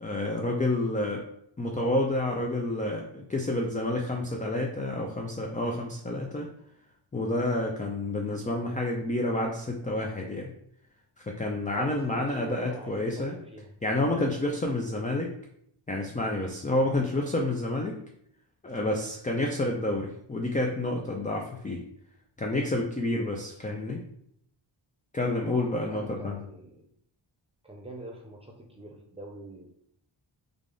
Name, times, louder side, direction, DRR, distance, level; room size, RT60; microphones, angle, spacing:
voice 1, 0.0-1.3 1.6-6.5 7.1-10.5 11.3-13.4 13.8-15.3 15.9-17.9 18.6-21.8 22.4-24.0 25.1-26.4, left 2 dB, 15° left, 0 dB, 0.4 m, -29 dB
voice 2, 11.7-13.7 19.5-19.8 25.5-26.8 27.6-29.7, right 2 dB, 10° right, 0 dB, 0.7 m, -44 dB
3.3 x 2.4 x 3.8 m, 0.70 s
wide cardioid pair, 85°, 49 cm